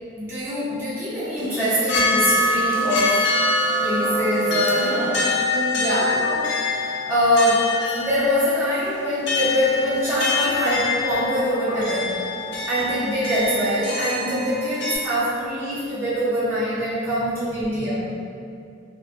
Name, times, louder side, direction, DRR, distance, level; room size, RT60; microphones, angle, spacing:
voice 1, 0.1-3.2 3.8-5.2 5.8-12.1 12.7-18.1, equal, 10° right, -12 dB, 0.6 m, -24 dB
sound 1, 1.4-15.0, left 2 dB, 55° left, 0.4 m, -25 dB
voice 2, 4.8-6.1 10.4-10.6 11.7-11.8 12.5-12.6 14.2-14.4 17.7-17.9, right 1 dB, 90° right, -11 dB, 1.1 m, -32 dB
2.4 x 2.1 x 2.4 m, 2.4 s
head